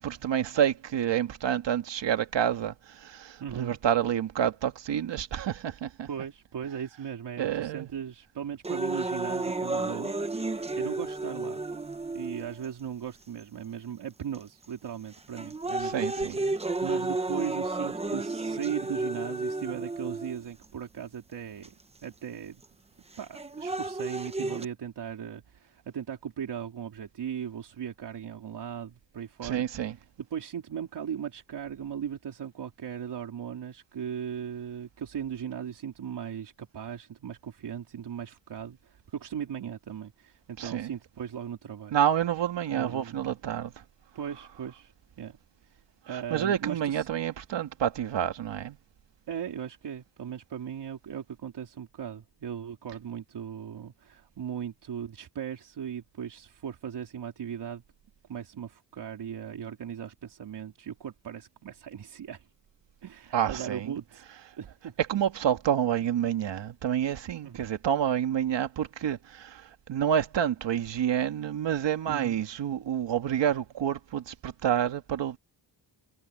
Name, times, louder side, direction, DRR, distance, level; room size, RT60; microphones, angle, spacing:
voice 1, 0.0-6.1 7.4-7.9 15.8-16.4 29.4-29.9 40.6-40.9 41.9-43.7 46.1-48.8 63.3-63.9 65.1-75.4, right 9 dB, 85° right, 1.9 m, -28 dB
voice 2, 3.4-3.8 6.1-11.6 12.1-21.7 22.0-22.6 23.2-41.9 42.7-43.4 44.1-45.4 45.6-45.8 46.1-47.1 49.3-57.8 58.3-62.5 63.0-64.2 64.6-65.0 67.4-67.6 72.1-72.4, right 8 dB, 70° right, 3.9 m, -38 dB
sound 1, 8.6-12.7 13.4-13.5 14.3-14.7 15.1-20.7 21.6-21.7 23.1-24.7, right 2 dB, 15° right, 0.9 m, -32 dB
wide cardioid pair, 180°, 43 cm